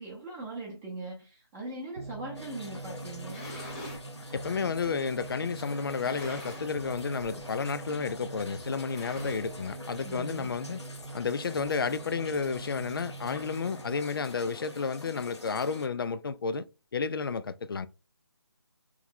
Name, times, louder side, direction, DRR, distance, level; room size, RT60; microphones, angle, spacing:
voice 1, 0.0-3.4 10.0-10.5, right 2 dB, 10° right, 0.7 m, -40 dB
sound 1, 2.0-14.0, right 3 dB, 80° right, 0.7 m, -43 dB
sound 2, 2.3-15.9, left 2 dB, 80° left, 0.9 m, -46 dB
sound 3, 3.2-4.1 4.8-4.9 5.8-6.8 7.1-7.4 7.7-7.8 8.7-9.8, left 1 dB, 15° left, 0.9 m, -44 dB
voice 2, 4.3-10.8 11.1-16.7 16.9-17.9, left 5 dB, 55° left, 0.4 m, -31 dB
3.4 x 3.1 x 3.7 m
figure-of-eight pair, 150°, 14 cm